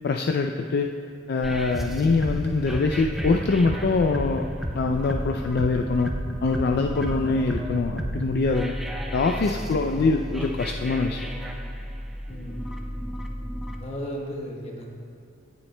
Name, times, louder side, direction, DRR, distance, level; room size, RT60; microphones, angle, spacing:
voice 1, 0.0-0.9 1.3-4.4 4.7-6.1 6.4-8.7 9.1-11.3, left 3 dB, 55° left, 3 dB, 0.4 m, -24 dB
sound 1, 1.4-13.8, equal, ahead, 0.5 m, -32 dB
voice 2, 9.6-10.2 12.3-12.7 13.7-14.9, equal, 30° left, 0 dB, 1.1 m, -36 dB
16.5 x 7.1 x 2.2 m, 2.6 s
head